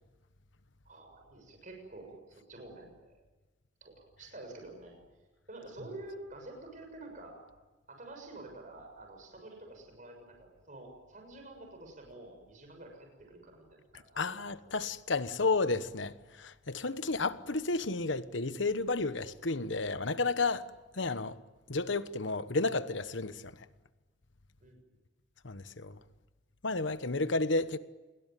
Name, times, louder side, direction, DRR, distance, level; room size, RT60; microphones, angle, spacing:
voice 1, 0.9-3.2 3.8-5.0 5.5-7.4 7.9-14.3 21.0-21.1 24.6-24.8, right 2 dB, 45° right, 6.8 m, -49 dB
voice 2, 14.2-20.7 20.9-21.4 21.7-23.4 25.4-26.0 26.6-27.8, left 3 dB, 80° left, 1.2 m, -32 dB
28.5 x 21.0 x 9.3 m
head